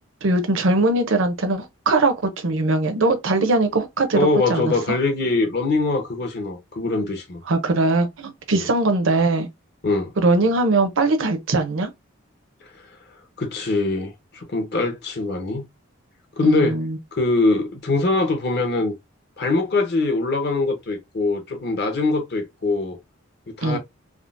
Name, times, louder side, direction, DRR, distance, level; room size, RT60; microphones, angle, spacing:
voice 1, 0.2-5.0 7.5-9.5 10.2-11.9 16.4-17.0 23.6-23.8, right 2 dB, 70° right, 0.6 m, -21 dB
voice 2, 4.2-7.4 8.6-8.7 9.8-10.1 13.4-15.6 16.4-16.7 17.1-18.9 19.4-23.0 23.5-23.8, left 3 dB, 50° left, 0.8 m, -22 dB
3.6 x 2.0 x 2.4 m
head